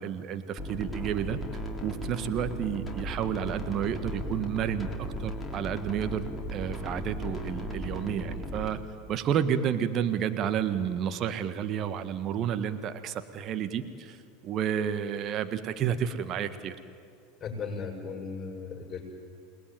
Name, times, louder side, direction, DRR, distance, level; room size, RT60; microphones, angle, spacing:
voice 1, 0.0-1.4 1.8-4.9 5.2-8.8 9.1-14.2 14.4-16.7, right 9 dB, 40° right, 10 dB, 1.6 m, -31 dB
sound 1, 0.6-8.7, equal, 5° left, 3.4 m, -36 dB
voice 2, 17.4-19.1, left 5 dB, 25° left, 1 dB, 7.3 m, -37 dB
28.5 x 20.0 x 9.3 m, 2.3 s
figure-of-eight pair, 80°, 0 cm